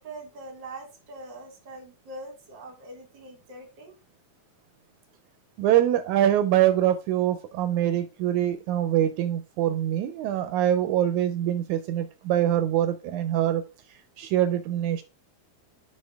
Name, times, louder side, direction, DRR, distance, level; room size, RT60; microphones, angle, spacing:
voice 1, 0.0-4.0, right 2 dB, 55° right, 4 dB, 1.4 m, -43 dB
voice 2, 5.6-13.6 14.2-15.0, right 11 dB, 80° right, 10 dB, 1.9 m, -24 dB
6.4 x 5.1 x 3.5 m, 0.29 s
omnidirectional pair, 3.7 m